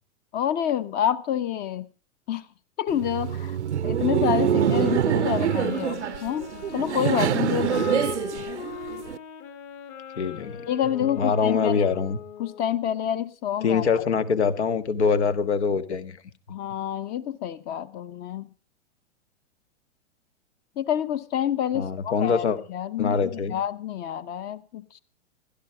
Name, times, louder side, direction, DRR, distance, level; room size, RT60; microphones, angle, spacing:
voice 1, 0.3-1.9 2.3-2.5 2.8-3.6 3.8-8.1 10.7-11.9 12.4-14.0 16.5-18.5 20.8-25.0, left 10 dB, 25° left, 16 dB, 0.9 m, -28 dB
Laughter, 2.9-9.2, right 9 dB, 65° right, 0.7 m, -25 dB
Wind instrument woodwind instrument, 4.4-12.8, left 8 dB, 40° left, 2.2 m, -38 dB
voice 2, 10.2-10.7 11.2-12.2 13.6-16.2 21.7-22.6 23.0-23.6, left 5 dB, 65° left, 12 dB, 1.6 m, -24 dB
16.0 x 12.5 x 4.9 m, 0.37 s
figure-of-eight pair, 105°, 37 cm